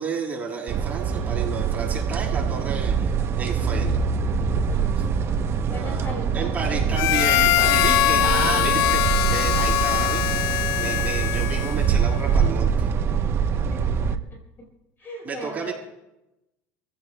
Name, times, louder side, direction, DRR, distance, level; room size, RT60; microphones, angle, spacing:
voice 1, 0.0-4.0 5.0-5.1 5.6-12.9 15.2-15.7, right 5 dB, 25° right, -2 dB, 7.3 m, -32 dB
sound 1, 0.7-14.2, right 6 dB, 40° right, 0.9 m, -24 dB
voice 2, 4.6-6.9 7.5-8.5 11.2-11.3 13.6-14.7 15.0-15.7, equal, 35° left, 1 dB, 4.7 m, -40 dB
Harmonica, 6.9-12.0, left 16 dB, 70° left, 0.4 m, -22 dB
29.5 x 16.0 x 2.3 m, 0.95 s
supercardioid pair, 115°, 6 cm